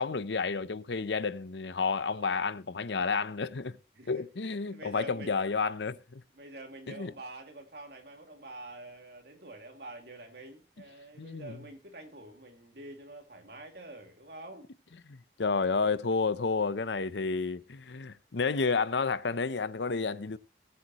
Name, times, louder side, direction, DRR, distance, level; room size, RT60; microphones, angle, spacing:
voice 1, 0.0-3.8 4.1-6.2 6.9-7.1 11.2-11.6 15.1-20.4, left 4 dB, 85° left, 0.7 m, -31 dB
voice 2, 4.7-5.3 6.3-14.7 15.8-15.9 17.1-17.2, right 2 dB, 70° right, 2.4 m, -47 dB
19.5 x 8.4 x 3.0 m
head